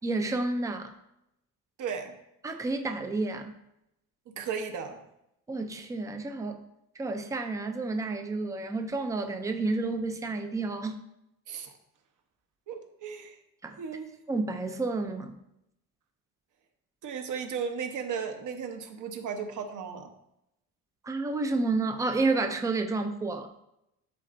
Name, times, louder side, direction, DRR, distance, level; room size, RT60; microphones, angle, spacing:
voice 1, 0.0-0.9 2.4-3.5 5.5-6.6 7.0-11.0 13.6-13.8 14.3-15.3 21.0-23.5, right 3 dB, 10° right, 6 dB, 0.4 m, -30 dB
voice 2, 1.8-2.1 4.3-5.0 11.5-11.7 12.7-13.4 13.8-14.1 17.0-20.1, right 6 dB, 55° right, 5 dB, 1.0 m, -35 dB
11.5 x 4.2 x 2.6 m, 0.82 s
cardioid pair, 160°, 37 cm